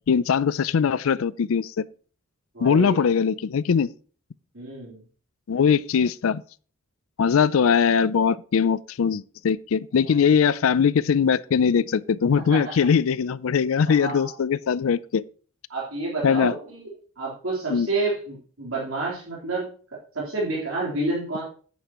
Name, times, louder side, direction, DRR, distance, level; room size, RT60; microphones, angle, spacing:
voice 1, 0.1-1.9 2.6-3.9 5.5-6.4 7.2-15.2 16.2-16.5 17.7-17.9, left 6 dB, 70° left, 0.4 m, -21 dB
voice 2, 2.5-3.1 4.5-5.0 10.1-10.4 12.5-12.6 13.9-14.3 15.7-16.9 17.2-19.7 20.1-21.4, right 2 dB, 70° right, 3.7 m, -29 dB
10.0 x 9.4 x 3.0 m
head